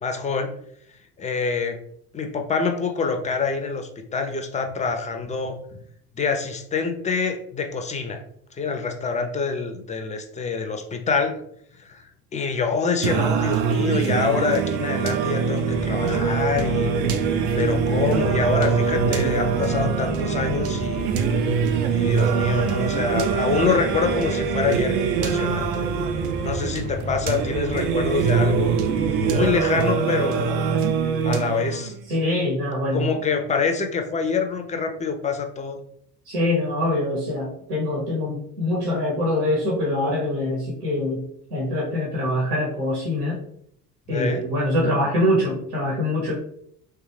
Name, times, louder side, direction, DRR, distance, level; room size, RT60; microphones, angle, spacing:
voice 1, 0.0-0.5 1.2-1.8 2.1-5.6 6.2-8.2 8.5-11.4 11.8-12.1 12.3-16.9 17.6-21.1 21.9-25.8 26.4-28.7 29.2-30.6 31.2-31.9 32.9-35.8 44.1-44.4, left 5 dB, 15° left, 5 dB, 0.4 m, -26 dB
Singing, 13.0-32.0, right 6 dB, 60° right, 0.5 m, -23 dB
sound 1, 15.7-29.7, equal, 25° right, 0.7 m, -33 dB
voice 2, 32.1-33.1 36.3-41.2 41.5-43.4 44.1-46.4, left 1 dB, 80° right, -4 dB, 1.0 m, -24 dB
3.2 x 2.3 x 3.2 m, 0.70 s
figure-of-eight pair, 55°, 46 cm